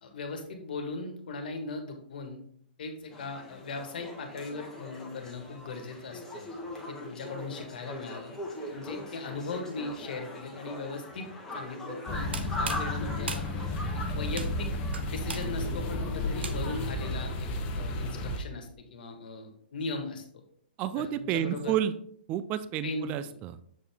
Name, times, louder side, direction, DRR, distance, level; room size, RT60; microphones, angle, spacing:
voice 1, 0.0-2.4 2.8-6.4 6.9-8.3 8.7-11.3 11.5-13.4 13.9-14.7 15.0-17.5 17.7-20.2 20.9-21.7 22.8-23.1, left 3 dB, 60° left, 4 dB, 1.5 m, -38 dB
sound 1, 3.1-17.4, left 1 dB, 10° left, 1.4 m, -41 dB
sound 2, 12.1-18.4, left 1 dB, 30° left, 0.9 m, -33 dB
sound 3, 12.2-16.9, right 5 dB, 80° right, 0.9 m, -41 dB
voice 2, 20.8-22.0 22.3-23.6, right 10 dB, 25° right, 13 dB, 0.4 m, -30 dB
7.2 x 4.5 x 3.5 m, 0.64 s
hypercardioid pair, 135°, 6 cm